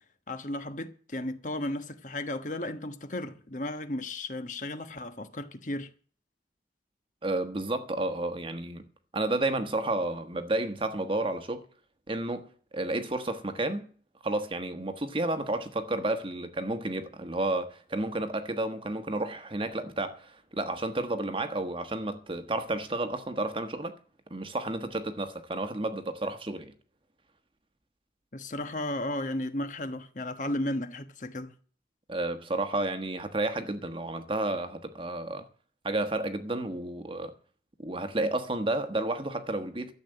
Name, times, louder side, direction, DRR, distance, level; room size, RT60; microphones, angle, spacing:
voice 1, 0.3-5.9 28.3-31.5, left 1 dB, 45° left, 1.2 m, -34 dB
voice 2, 7.2-8.8 9.1-11.6 12.1-12.5 12.7-13.9 14.2-24.0 24.3-26.7 32.1-35.5 35.8-37.3 37.8-39.9, right 2 dB, 30° right, 1.3 m, -31 dB
12.5 x 7.9 x 7.9 m
head